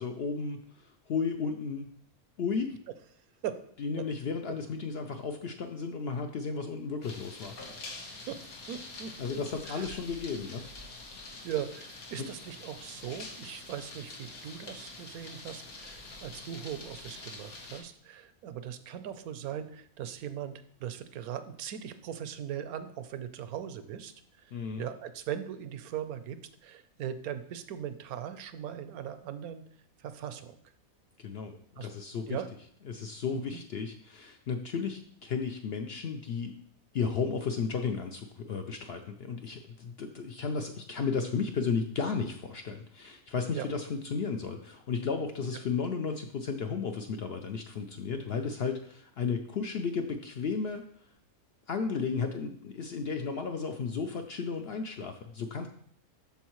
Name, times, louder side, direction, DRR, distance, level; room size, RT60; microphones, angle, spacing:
voice 1, 0.0-1.9 2.4-2.7 3.8-7.5 9.2-10.6 12.2-12.3 24.5-24.8 31.2-31.5 31.8-32.4 32.9-36.5 36.9-50.8 51.7-55.7, left 5 dB, 65° left, 5 dB, 0.6 m, -34 dB
sound 1, 7.0-17.8, left 2 dB, 80° left, 1.8 m, -46 dB
voice 2, 8.7-10.0 11.4-24.1 24.4-29.6 30.0-30.6 31.8-31.9 32.3-32.5 33.3-33.4 43.5-43.7, right 9 dB, 80° right, 11 dB, 1.1 m, -39 dB
12.5 x 4.4 x 3.0 m, 0.63 s
omnidirectional pair, 1.5 m